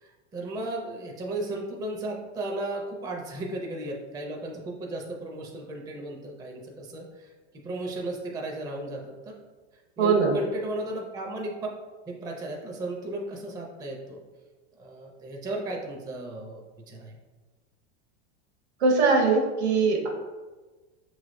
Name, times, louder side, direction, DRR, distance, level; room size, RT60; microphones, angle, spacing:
voice 1, 0.0-7.3 7.6-9.4 10.0-11.6 12.1-14.2 14.8-17.2, right 1 dB, 10° right, 0 dB, 0.4 m, -35 dB
voice 2, 10.0-10.3 18.8-20.1, right 4 dB, 80° right, 1 dB, 1.1 m, -21 dB
5.6 x 3.2 x 2.5 m, 1.3 s
supercardioid pair, 130°, 33 cm